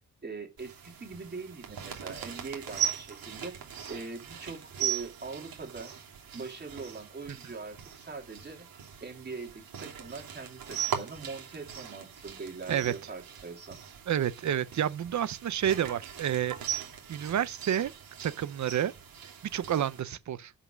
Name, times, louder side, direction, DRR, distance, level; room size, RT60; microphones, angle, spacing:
voice 1, 0.2-3.6 3.9-5.9 6.3-8.7 9.0-13.8, right 4 dB, 30° right, 2.8 m, -42 dB
sound 1, 0.6-20.0, right 9 dB, 85° right, 3.0 m, -40 dB
voice 2, 14.1-17.9 18.2-18.9 19.5-20.5, right 10 dB, 55° right, 0.8 m, -30 dB
11.0 x 5.8 x 6.3 m
wide cardioid pair, 160°, 34 cm